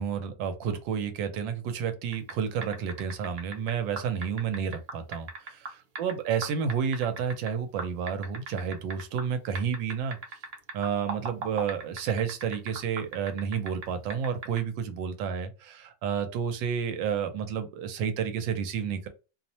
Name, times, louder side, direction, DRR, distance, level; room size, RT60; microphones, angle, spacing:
voice 1, 0.0-10.2 10.7-19.1, right 7 dB, 85° right, 1.3 m, -30 dB
sound 1, 2.1-2.3 2.6-6.1 6.4-7.5 7.8-9.3 9.6-13.9 14.1-14.6, right 4 dB, 70° right, 0.5 m, -37 dB
3.0 x 2.0 x 2.7 m
omnidirectional pair, 2.0 m